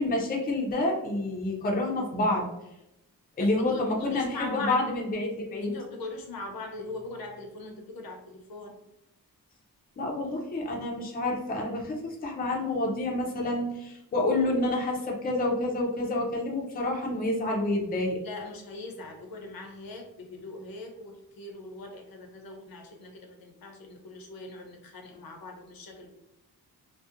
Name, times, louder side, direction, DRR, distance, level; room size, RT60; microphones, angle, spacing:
voice 1, 0.0-2.5 3.4-5.7 10.0-18.2, left 2 dB, 25° left, -1 dB, 0.4 m, -28 dB
voice 2, 3.4-5.0 5.6-8.8 18.2-26.1, left 2 dB, 75° left, 3 dB, 0.6 m, -41 dB
2.7 x 2.0 x 2.4 m, 0.86 s
wide cardioid pair, 145°, 36 cm